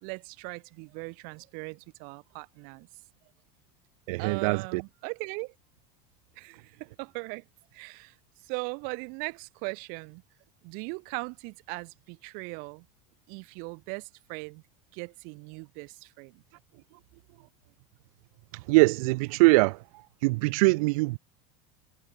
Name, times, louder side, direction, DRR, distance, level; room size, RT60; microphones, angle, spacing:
voice 1, 0.0-2.9 4.2-5.5 6.4-7.5 7.7-8.2 8.4-10.2 10.6-12.9 13.3-14.6 14.9-16.4, right 34 dB, 45° right, 1.8 m, -39 dB
voice 2, 4.1-4.8 18.5-19.8 20.2-21.2, right 25 dB, 65° right, 0.5 m, -22 dB
cardioid pair, 180°, 20 cm